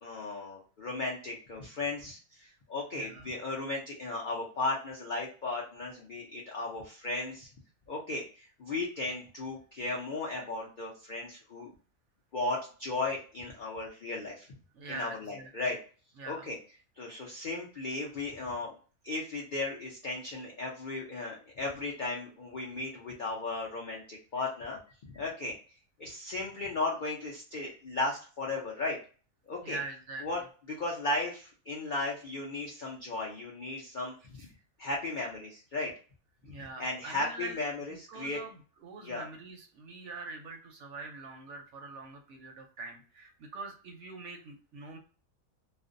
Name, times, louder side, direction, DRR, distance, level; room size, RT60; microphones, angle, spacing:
voice 1, 0.0-7.5 7.9-11.7 12.3-14.5 14.9-15.8 16.2-16.6 17.0-18.7 19.0-25.6 26.0-29.0 29.5-29.8 30.2-30.4 30.7-34.5 34.8-35.9 36.8-38.4 39.0-39.3, left 2 dB, 70° left, -2 dB, 0.4 m, -36 dB
voice 2, 2.9-3.3 14.7-15.5 16.2-16.5 29.6-30.2 34.4-34.5 36.4-37.5 37.9-45.0, right 3 dB, 65° right, 3 dB, 0.8 m, -44 dB
2.4 x 2.0 x 2.5 m, 0.38 s
omnidirectional pair, 1.5 m